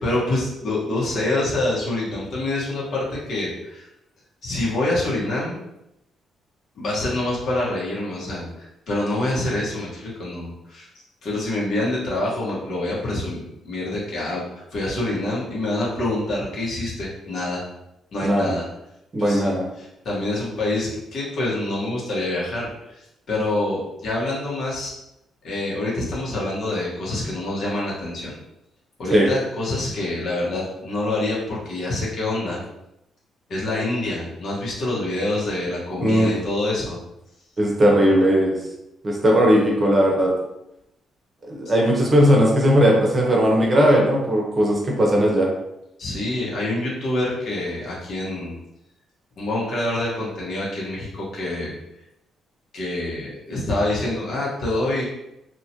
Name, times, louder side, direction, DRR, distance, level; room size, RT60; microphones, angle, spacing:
voice 1, 0.0-3.9 4.4-5.6 6.8-10.9 11.2-17.6 18.1-18.6 19.2-19.5 19.8-24.9 25.4-28.3 29.0-32.6 33.5-37.0 46.0-48.6 49.4-51.8 52.7-55.1, left 2 dB, 60° left, -5 dB, 1.3 m, -26 dB
voice 2, 18.2-18.5 19.1-19.6 29.1-29.3 36.0-36.3 37.6-38.6 39.0-40.3 41.4-45.5, equal, 30° right, -1 dB, 0.8 m, -18 dB
2.8 x 2.5 x 2.9 m, 0.85 s
cardioid pair, 90°, 0 cm